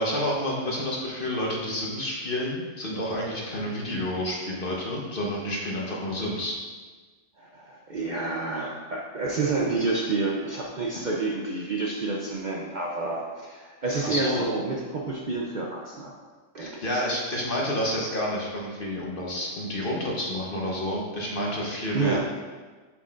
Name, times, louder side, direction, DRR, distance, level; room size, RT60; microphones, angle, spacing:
voice 1, 0.0-6.5 14.0-14.4 16.6-22.2, left 1 dB, 45° left, -3 dB, 1.3 m, -29 dB
voice 2, 7.4-16.1 16.5-16.8 21.9-22.2, right 3 dB, 45° right, -3 dB, 0.7 m, -29 dB
7.2 x 6.4 x 2.5 m, 1.3 s
omnidirectional pair, 1.3 m